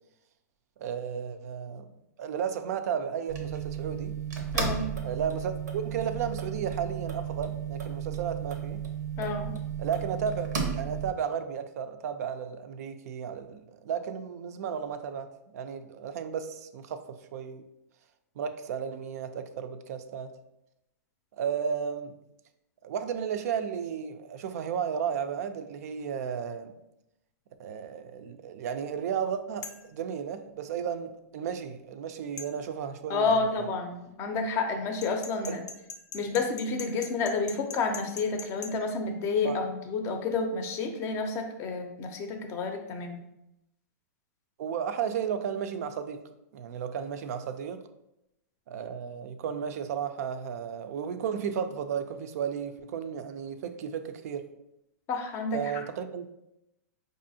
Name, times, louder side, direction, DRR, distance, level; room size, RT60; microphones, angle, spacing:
voice 1, 0.8-1.9 2.2-4.2 5.0-8.8 9.8-17.6 18.4-20.3 21.4-22.1 22.8-26.7 27.6-33.7 35.5-35.6 39.4-39.6 44.6-46.2 46.5-47.8 48.7-54.5 55.5-56.3, right 7 dB, 65° right, 0.4 m, -34 dB
sound 1, 3.3-11.1, right 7 dB, 90° right, 0.7 m, -34 dB
voice 2, 4.5-4.9 9.2-9.5 33.1-35.6 36.1-43.2 55.1-55.8, left 4 dB, 30° left, 0.5 m, -30 dB
sound 2, 29.6-29.9 32.4-32.5 35.0-38.7, left 5 dB, 80° left, 0.5 m, -41 dB
4.7 x 2.6 x 2.7 m
hypercardioid pair, 135°, 9 cm